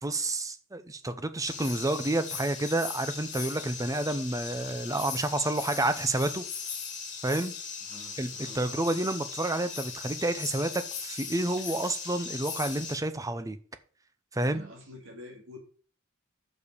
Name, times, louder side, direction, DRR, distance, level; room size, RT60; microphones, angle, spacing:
voice 1, 0.0-6.4 7.2-7.5 8.2-13.6 14.3-14.6, right 2 dB, 15° right, 11 dB, 0.7 m, -29 dB
sound 1, 1.4-13.0, left 6 dB, 40° left, 2.3 m, -39 dB
voice 2, 7.8-8.6 14.4-15.6, left 1 dB, 65° right, 0 dB, 2.4 m, -47 dB
6.4 x 5.6 x 6.8 m, 0.42 s
head